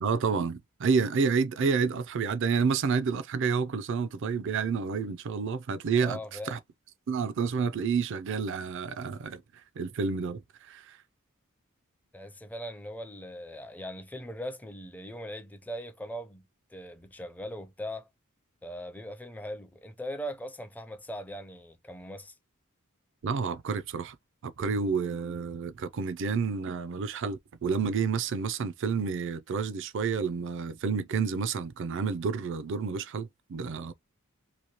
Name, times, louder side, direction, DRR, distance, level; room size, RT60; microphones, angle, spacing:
voice 1, 0.0-6.2 6.5-6.6 7.1-9.4 9.8-11.0 23.2-24.2 24.4-33.9, right 5 dB, 60° right, 0.4 m, -29 dB
voice 2, 6.0-6.6 12.1-16.4 16.7-18.1 18.6-22.3, equal, 10° left, 0.5 m, -40 dB
3.0 x 2.7 x 2.9 m
head